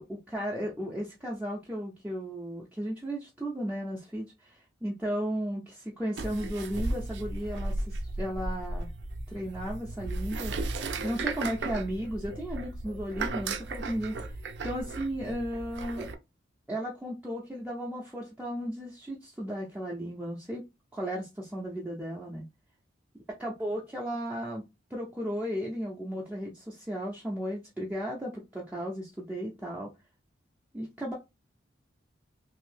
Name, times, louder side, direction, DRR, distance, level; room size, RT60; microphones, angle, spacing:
voice 1, 0.0-8.9 9.3-10.5 11.0-14.4 14.6-16.1 16.7-20.7 20.9-22.4 23.3-24.6 24.9-29.9 30.7-31.1, equal, 10° right, -3 dB, 0.4 m, -35 dB
sound 1, 6.2-16.1, right 2 dB, 65° right, 0.4 m, -35 dB
2.8 x 2.6 x 3.2 m, 0.25 s
head